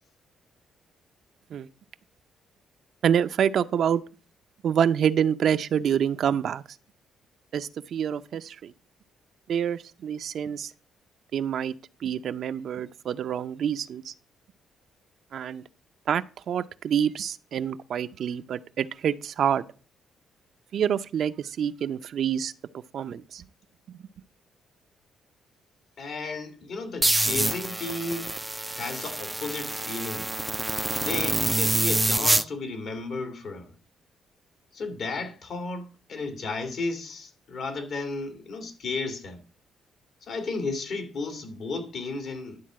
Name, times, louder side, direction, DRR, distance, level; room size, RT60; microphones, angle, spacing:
voice 1, 3.0-4.0 4.6-6.6 7.5-8.7 9.5-10.7 11.3-11.7 12.0-14.1 15.3-15.6 16.1-19.6 20.7-23.4, right 8 dB, 65° right, 0.6 m, -27 dB
voice 2, 26.0-28.3 28.7-30.3 31.0-33.7 34.7-39.4 40.2-42.6, left 3 dB, 65° left, 2.4 m, -33 dB
sound 1, 27.0-32.4, right 1 dB, 10° right, 0.4 m, -26 dB
11.5 x 3.9 x 7.5 m
cardioid pair, 90°, 0 cm